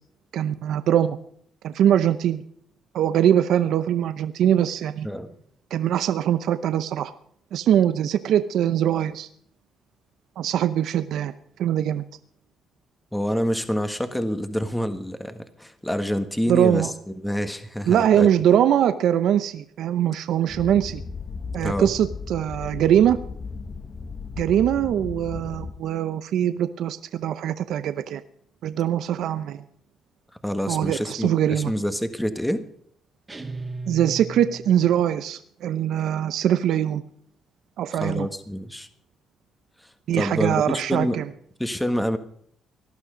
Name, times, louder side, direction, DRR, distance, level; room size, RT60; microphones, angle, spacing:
voice 1, 0.3-1.2 1.6-2.4 2.9-5.1 5.7-7.1 7.5-9.3 10.4-11.3 11.6-12.0 16.5-16.9 17.9-21.0 21.5-23.2 24.4-28.2 28.6-29.6 30.7-31.7 33.9-37.0 37.8-38.3 40.1-41.2, right 10 dB, 75° right, 12 dB, 0.7 m, -22 dB
voice 2, 13.1-18.3 21.6-21.9 30.4-32.6 37.9-38.9 40.1-41.2 41.6-42.2, equal, 5° left, 8 dB, 1.6 m, -27 dB
sound 1, 20.5-25.7, left 4 dB, 35° left, 1.4 m, -35 dB
sound 2, 33.3-35.0, right 3 dB, 20° right, 2.1 m, -36 dB
18.5 x 12.0 x 5.1 m, 0.63 s
cardioid pair, 90°, 0 cm